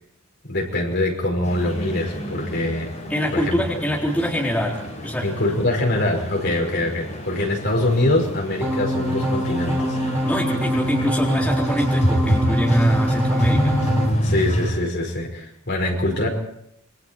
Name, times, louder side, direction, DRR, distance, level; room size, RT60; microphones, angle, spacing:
voice 1, 0.5-2.9 3.3-3.6 5.2-10.0 14.2-16.3, left 1 dB, 50° left, 1 dB, 5.4 m, -23 dB
sound 1, 1.4-14.7, equal, 35° left, 7.6 m, -28 dB
voice 2, 3.1-5.3 10.2-13.8, equal, 5° left, -3 dB, 3.8 m, -23 dB
sound 2, 8.6-14.1, equal, 15° right, 6.2 m, -23 dB
27.5 x 25.0 x 4.6 m, 0.75 s
head